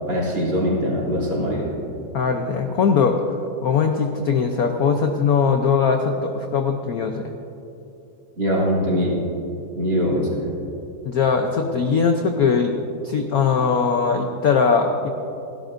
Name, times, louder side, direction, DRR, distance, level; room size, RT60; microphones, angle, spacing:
voice 1, 0.1-1.8 8.4-9.2 9.7-10.5, equal, 55° right, -5 dB, 3.6 m, -22 dB
voice 2, 2.1-3.2 3.6-7.3 11.0-12.7 13.0-15.1, left 5 dB, 65° left, 4 dB, 0.9 m, -20 dB
29.5 x 11.5 x 2.6 m, 2.7 s
omnidirectional pair, 2.3 m